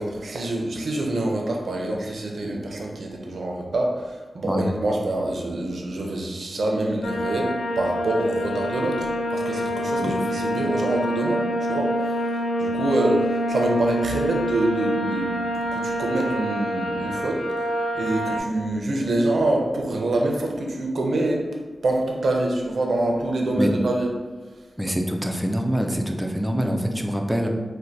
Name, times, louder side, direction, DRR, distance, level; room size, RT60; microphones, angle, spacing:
voice 1, 0.0-17.7 17.9-21.5 21.8-24.1 24.6-24.7, right 1 dB, 80° right, 0 dB, 0.5 m, -26 dB
sound 1, 7.0-18.4, equal, 85° left, 0.5 m, -26 dB
voice 2, 24.8-27.5, equal, 5° right, 2 dB, 0.4 m, -25 dB
4.3 x 2.2 x 2.6 m, 1.3 s
wide cardioid pair, 80°, 0 cm